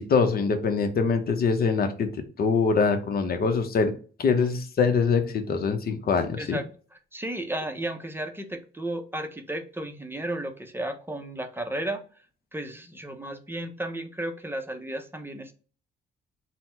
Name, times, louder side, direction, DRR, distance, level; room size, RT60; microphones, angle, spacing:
voice 1, 0.0-2.1 2.4-3.9 4.2-6.6, left 5 dB, 50° left, 6 dB, 0.8 m, -24 dB
voice 2, 7.1-12.0 12.5-15.5, right 1 dB, 10° right, 5 dB, 0.6 m, -33 dB
4.1 x 2.1 x 4.3 m, 0.39 s
cardioid pair, 90°, 20 cm